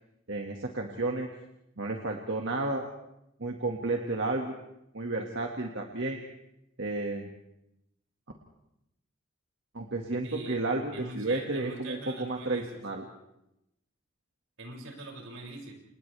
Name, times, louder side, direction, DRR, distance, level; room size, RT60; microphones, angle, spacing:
voice 1, 0.3-1.3 1.8-2.8 3.4-4.5 4.9-6.2 6.8-7.3 9.7-13.0, right 2 dB, 60° right, 1 dB, 2.0 m, -32 dB
voice 2, 10.2-10.6 10.9-12.8 14.6-15.7, right 2 dB, 85° right, 0 dB, 6.7 m, -43 dB
29.0 x 28.0 x 3.5 m, 0.86 s
head